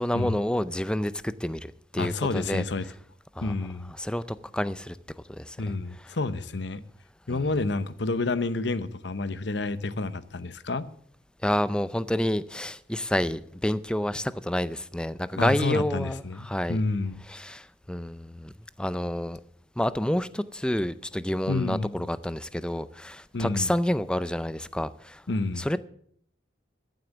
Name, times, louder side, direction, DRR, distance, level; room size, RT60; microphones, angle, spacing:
voice 1, 0.0-2.6 3.4-3.5 4.0-5.0 5.3-5.7 7.3-7.5 11.4-16.8 17.3-18.5 18.8-19.4 19.8-25.2 25.6-25.8, left 1 dB, 5° left, 0.4 m, -29 dB
voice 2, 2.0-2.9 3.4-3.9 5.6-6.8 7.3-10.9 15.4-17.2 21.5-22.0 23.3-23.7 25.3-25.7, left 3 dB, 65° left, 0.8 m, -29 dB
14.0 x 7.8 x 7.1 m
head